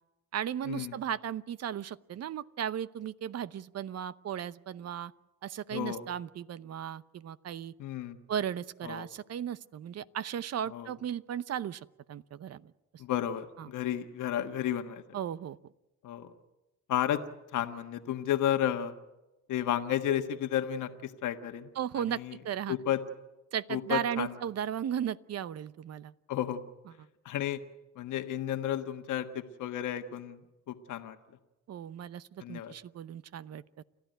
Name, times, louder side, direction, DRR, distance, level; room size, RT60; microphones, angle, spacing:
voice 1, 0.3-5.1 5.4-7.7 8.3-12.7 13.6-13.7 15.1-15.6 21.7-22.8 23.5-26.1 27.0-27.1 31.7-33.8, right 9 dB, 55° right, 16 dB, 0.8 m, -36 dB
voice 2, 5.7-6.0 7.8-8.2 8.8-9.1 10.7-10.9 13.0-15.0 16.0-16.3 16.9-17.2 17.5-18.9 19.5-21.7 22.1-22.4 22.7-23.0 23.7-24.3 26.3-26.6 27.2-27.6 28.0-30.4 30.7-31.2 32.4-32.7, left 11 dB, 80° left, 6 dB, 1.5 m, -32 dB
30.0 x 13.0 x 9.2 m, 1.0 s
cardioid pair, 90°, 30 cm